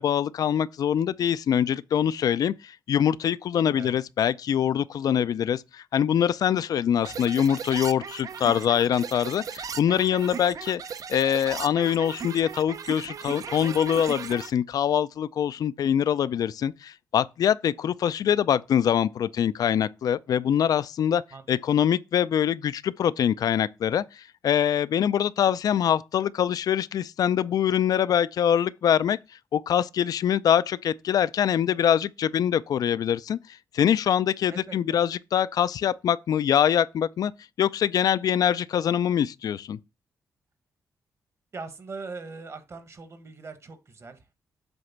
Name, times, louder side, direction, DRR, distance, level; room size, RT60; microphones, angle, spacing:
voice 1, 0.0-10.8 11.1-21.2 21.5-29.2 29.5-33.4 33.7-37.3 37.6-39.8, left 9 dB, 70° left, 0.4 m, -24 dB
sound 1, 7.0-14.5, right 7 dB, 60° right, 0.6 m, -37 dB
voice 2, 21.3-21.8 34.5-35.0 41.5-44.3, right 4 dB, 45° right, 1.4 m, -41 dB
8.0 x 3.2 x 5.9 m
cardioid pair, 70°, 7 cm